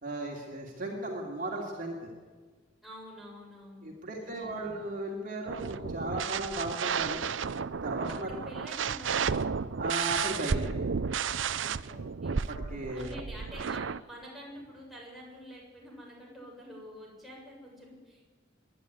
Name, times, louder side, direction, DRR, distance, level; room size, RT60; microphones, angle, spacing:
voice 1, 0.0-2.1 3.8-7.2 7.8-8.3 9.8-10.8 12.2-13.2, right 2 dB, 45° right, -1 dB, 2.8 m, -36 dB
voice 2, 2.8-3.9 4.2-4.9 8.1-9.5 11.5-12.4 12.9-18.2, equal, ahead, -4 dB, 6.9 m, -48 dB
sound 1, 5.5-14.0, right 6 dB, 80° right, 0.6 m, -32 dB
25.0 x 11.0 x 9.6 m, 1.4 s
head